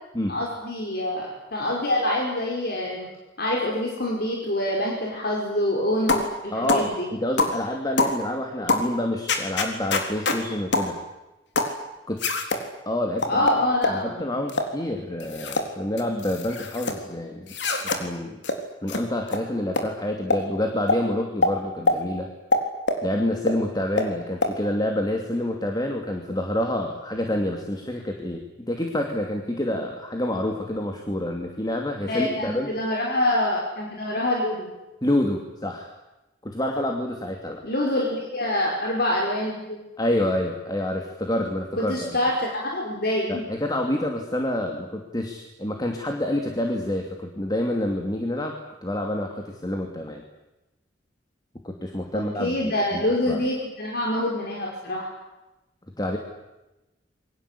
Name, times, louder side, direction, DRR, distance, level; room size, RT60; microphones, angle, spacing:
voice 1, 0.3-3.1 3.4-7.1 13.3-14.3 32.1-34.7 37.6-39.8 41.8-43.4 52.1-55.1, left 1 dB, 60° left, -2 dB, 5.5 m, -26 dB
sound 1, 6.1-6.3 6.7-6.9 7.4-7.6 8.0-8.2 8.7-8.9 9.3-10.4 10.7-10.9 11.6-11.8 12.2-12.6 13.2-14.0 14.5-14.7 15.2-15.7 16.0-17.0 17.5-18.0 18.4-18.6 18.9-19.0 19.3-19.4 19.8-19.9 20.3-20.4 20.9-21.0 21.4-21.5 21.9-22.0 22.5-23.0 23.5-23.6 24.0-24.1 24.4-24.5, left 3 dB, 75° left, 3.9 m, -24 dB
voice 2, 6.5-11.0 12.1-12.2 12.9-13.6 13.9-17.5 17.8-18.4 18.8-22.3 23.0-32.7 35.0-35.9 36.4-37.6 40.0-42.2 43.3-48.5 48.8-50.2 51.6-53.4 56.0-56.2, left 1 dB, 20° left, 3 dB, 2.7 m, -28 dB
28.0 x 23.5 x 8.5 m, 1.0 s
head